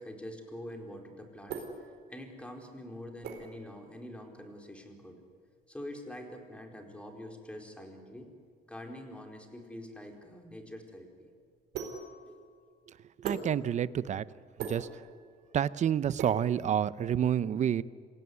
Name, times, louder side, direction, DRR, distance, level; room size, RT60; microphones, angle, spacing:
voice 1, 0.0-1.6 2.1-5.2 5.7-8.3 8.6-11.3 12.3-12.4 14.8-14.9, left 1 dB, 5° left, 3 dB, 4.5 m, -45 dB
sound 1, 0.9-17.3, right 6 dB, 75° right, 4.4 m, -45 dB
voice 2, 13.2-14.2 14.6-14.9 15.5-17.8, right 9 dB, 45° right, 17 dB, 0.7 m, -29 dB
26.5 x 17.0 x 9.9 m, 2.1 s
cardioid pair, 110°, 17 cm